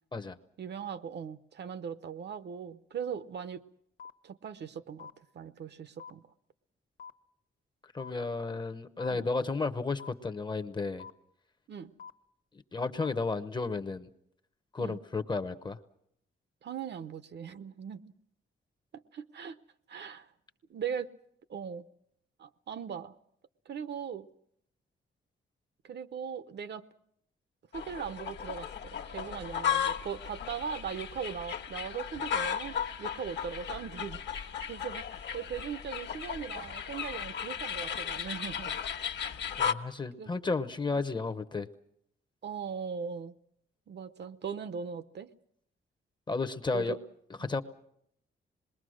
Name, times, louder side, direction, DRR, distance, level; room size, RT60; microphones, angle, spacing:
voice 1, 0.6-3.6 4.2-6.2 9.1-9.3 11.7-11.9 14.8-15.0 16.6-18.1 18.9-19.6 19.9-20.3 20.7-21.1 21.5-21.8 22.4-23.1 23.7-24.3 25.8-26.9 27.7-38.8 40.2-40.3 42.4-43.4 43.9-45.3 46.7-47.0 47.4-47.5, right 7 dB, 55° right, 13 dB, 0.8 m, -39 dB
sound 1, 4.0-4.1 5.0-5.1 6.0-6.1 7.0-7.1 8.0-8.1 9.0-9.1 10.0-10.1 11.0-11.1 12.0-12.1 13.0-13.1, left 6 dB, 40° left, 1.0 m, -45 dB
voice 2, 7.9-11.1 12.7-14.1 14.7-15.8 39.6-41.7 46.3-47.0 47.4-47.6, left 3 dB, 20° left, 10 dB, 0.8 m, -33 dB
sound 2, 27.7-39.7, left 8 dB, 55° left, 1.3 m, -35 dB
27.0 x 21.0 x 6.3 m, 0.73 s
wide cardioid pair, 160°, 21 cm